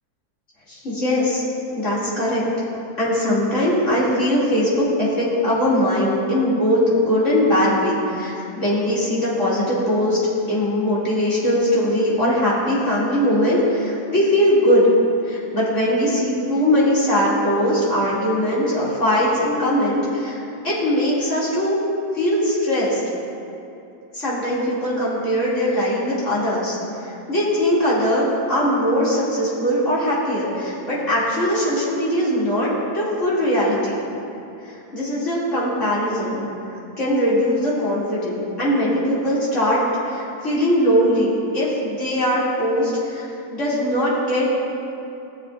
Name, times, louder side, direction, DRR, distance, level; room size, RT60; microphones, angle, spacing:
voice 1, 0.7-1.4 1.8-2.4 3.0-10.2 10.5-14.9 15.2-21.8 22.1-23.0 24.1-26.8 27.0-34.1 34.6-36.4 37.0-44.5, equal, 50° left, -9 dB, 2.9 m, -20 dB
18.0 x 7.7 x 2.5 m, 2.8 s
omnidirectional pair, 1.7 m